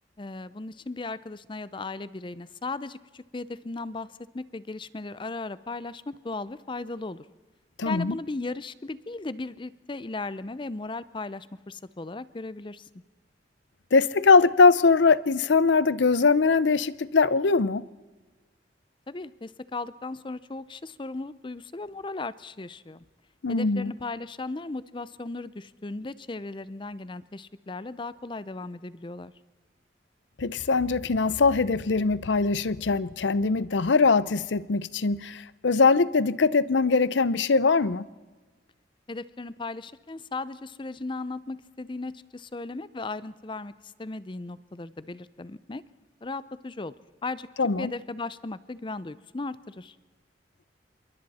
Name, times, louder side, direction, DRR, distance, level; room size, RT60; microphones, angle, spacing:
voice 1, 0.2-4.1 4.3-7.3 7.8-12.9 19.1-23.0 23.5-29.3 39.1-45.8 46.2-46.9 47.2-47.5 47.8-50.0, left 3 dB, 25° left, 0.6 m, -36 dB
voice 2, 7.8-8.1 13.9-17.8 23.4-23.9 30.4-38.1 47.6-47.9, left 4 dB, 85° left, 0.7 m, -22 dB
27.0 x 23.0 x 4.2 m
head